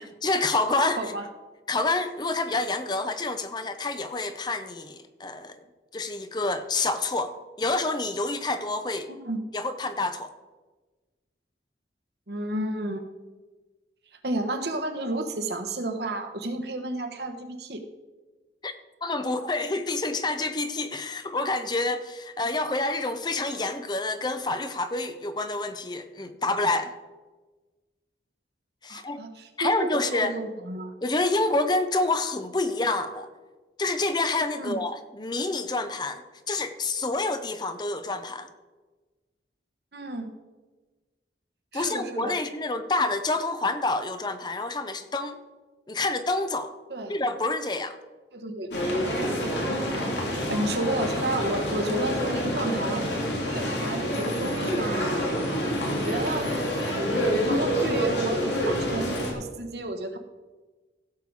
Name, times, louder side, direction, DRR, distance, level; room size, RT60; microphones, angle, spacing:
voice 1, 0.2-1.0 1.7-5.6 5.9-9.1 9.5-10.3 18.6-18.7 19.0-27.0 28.8-29.2 29.6-30.4 31.0-33.3 33.8-38.5 41.7-45.4 45.9-46.7 47.1-48.0, left 2 dB, 25° left, 10 dB, 0.6 m, -28 dB
voice 2, 9.1-9.4 12.3-13.0 14.2-17.8 28.9-30.9 34.5-34.8 39.9-40.3 41.7-42.4 46.9-47.2 48.3-48.7 49.6-49.8 50.4-53.1 53.4-55.2 55.8-56.5 57.4-60.2, right 1 dB, 70° right, 6 dB, 1.2 m, -31 dB
sound 1, 48.7-59.3, equal, 85° left, 2.7 m, -27 dB
16.0 x 6.9 x 4.8 m, 1.3 s
head